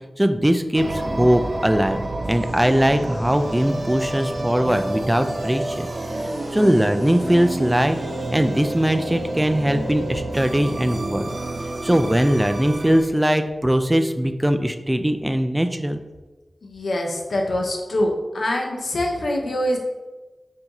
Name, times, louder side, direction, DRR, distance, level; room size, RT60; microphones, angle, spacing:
voice 1, 0.2-2.0 2.3-5.9 6.5-8.0 8.3-11.3 11.8-16.0, equal, 10° right, 8 dB, 0.3 m, -20 dB
sound 1, 0.7-13.0, right 2 dB, 80° right, 0.6 m, -29 dB
voice 2, 16.6-19.8, left 1 dB, 80° left, 1 dB, 0.7 m, -24 dB
5.7 x 2.7 x 2.9 m, 1.2 s
wide cardioid pair, 60°, 0 cm